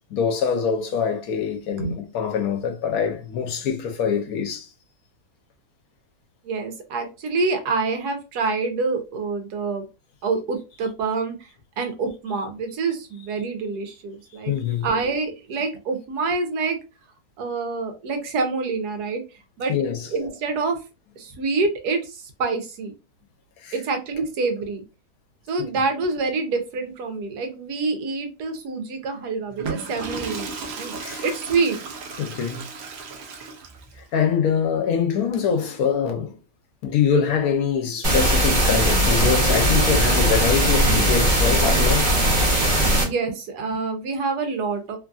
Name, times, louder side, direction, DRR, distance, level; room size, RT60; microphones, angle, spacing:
voice 1, 0.1-4.7 14.5-14.9 19.7-20.1 23.6-23.7 31.0-31.2 32.2-32.6 34.1-36.4 36.8-42.2, left 7 dB, 70° left, 1.1 m, -24 dB
voice 2, 6.4-9.8 10.2-11.5 11.8-14.5 14.8-16.8 17.4-19.2 19.6-19.7 20.1-20.8 21.2-22.9 23.7-24.8 25.5-30.9 31.2-31.8 43.0-45.0, right 4 dB, 90° right, 1.3 m, -26 dB
Water / Toilet flush, 29.5-34.0, right 4 dB, 65° right, 0.7 m, -35 dB
sound 1, 38.0-43.0, right 1 dB, 35° right, 0.9 m, -19 dB
3.2 x 2.5 x 2.3 m
omnidirectional pair, 1.7 m